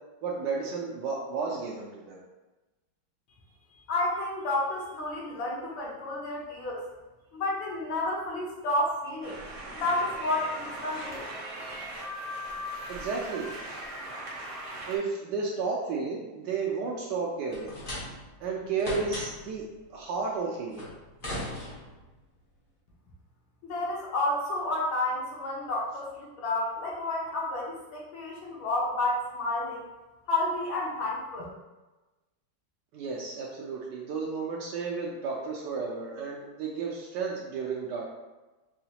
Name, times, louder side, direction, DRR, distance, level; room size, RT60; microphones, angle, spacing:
voice 1, 0.2-2.2 12.9-13.5 14.9-17.7 18.4-19.6 19.9-20.9 32.9-38.0, right 4 dB, 70° right, -2 dB, 1.1 m, -32 dB
voice 2, 3.9-6.8 7.3-9.4 9.7-11.2 23.6-29.9 30.3-31.4, left 2 dB, 75° left, -4 dB, 1.6 m, -30 dB
sound 1, 9.2-15.0, equal, 55° right, 0.9 m, -39 dB
sound 2, 17.5-18.4 18.8-19.6 20.7-22.1, left 1 dB, 50° left, 0.6 m, -38 dB
4.9 x 2.3 x 2.8 m, 1.1 s
omnidirectional pair, 2.2 m